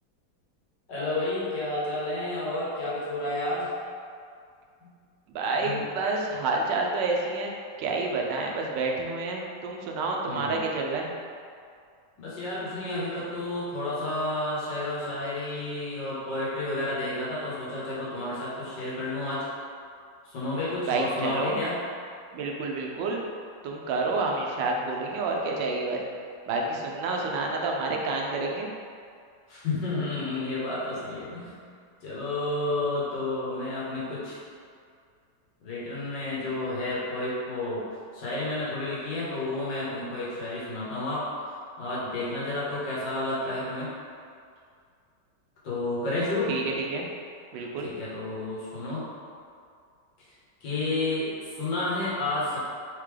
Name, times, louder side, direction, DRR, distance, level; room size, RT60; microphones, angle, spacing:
voice 1, 0.9-3.7 4.8-4.9 5.6-5.8 10.2-10.6 12.2-19.5 20.2-21.8 29.5-31.6 32.0-34.4 35.6-37.9 38.1-41.3 41.8-43.9 45.6-46.6 47.8-49.0 50.6-52.6, left 2 dB, 85° left, -8 dB, 1.9 m, -31 dB
voice 2, 5.3-7.5 7.8-11.1 20.9-21.6 22.3-23.2 23.6-26.0 26.5-28.7 46.5-47.1 47.5-47.9, right 3 dB, 90° right, 0 dB, 1.3 m, -29 dB
4.1 x 3.5 x 3.3 m, 2.3 s
omnidirectional pair, 1.9 m